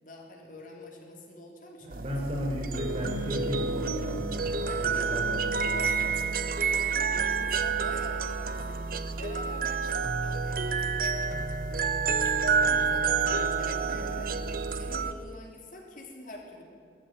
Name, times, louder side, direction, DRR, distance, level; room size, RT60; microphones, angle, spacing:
voice 1, 0.0-2.0 4.6-5.3 5.7-11.4 11.7-14.3 14.7-16.6, left 1 dB, 45° left, 0 dB, 3.5 m, -46 dB
voice 2, 1.8-4.3 4.8-5.4, equal, 35° right, -1 dB, 4.7 m, -33 dB
sound 1, 1.9-15.1, right 5 dB, 50° right, 1.0 m, -29 dB
19.0 x 14.0 x 9.9 m, 2.3 s
head